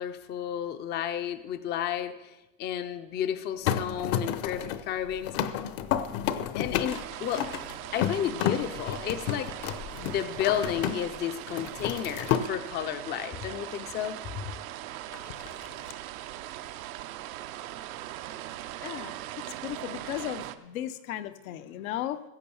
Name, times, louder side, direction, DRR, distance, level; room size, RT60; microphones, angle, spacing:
voice 1, 0.0-5.4 6.5-7.5 7.9-9.7 10.0-14.4, left 10 dB, 25° left, 10 dB, 0.5 m, -32 dB
sound 1, 3.6-11.2 11.5-12.5 15.1-15.9, left 10 dB, 55° left, 0.9 m, -31 dB
sound 2, 6.9-20.6, right 13 dB, 80° right, 0.9 m, -40 dB
voice 2, 18.8-22.2, left 12 dB, 80° left, 9 dB, 1.0 m, -36 dB
16.0 x 6.9 x 7.1 m, 0.99 s
supercardioid pair, 140°, 41 cm